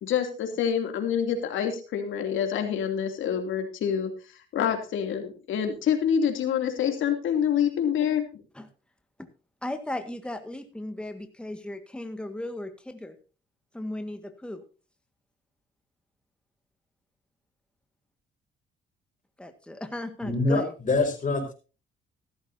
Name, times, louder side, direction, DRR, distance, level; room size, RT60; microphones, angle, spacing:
voice 1, 0.0-4.1 4.5-8.4, left 8 dB, 75° left, 5 dB, 2.8 m, -26 dB
voice 2, 9.6-13.1 13.7-14.6 19.4-20.7, left 1 dB, 5° left, 7 dB, 1.7 m, -36 dB
voice 3, 20.2-21.5, left 3 dB, 40° left, 4 dB, 4.8 m, -25 dB
15.0 x 13.0 x 2.7 m, 0.34 s
cardioid pair, 90°, 20 cm